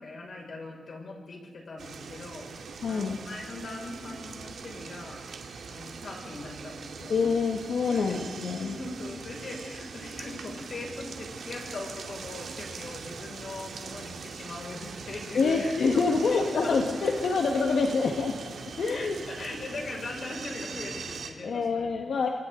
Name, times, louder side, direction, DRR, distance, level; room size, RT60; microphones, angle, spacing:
voice 1, 0.0-5.2 5.6-7.1 7.9-8.1 8.6-17.1 18.9-22.3, left 2 dB, 55° left, 0 dB, 6.2 m, -40 dB
sound 1, 1.8-21.3, right 5 dB, 80° right, 2.2 m, -41 dB
voice 2, 2.8-3.2 7.1-8.8 15.3-19.1 21.4-22.3, left 4 dB, 75° left, 1 dB, 1.7 m, -26 dB
27.5 x 23.5 x 4.0 m, 1.5 s
cardioid pair, 85°, 0 cm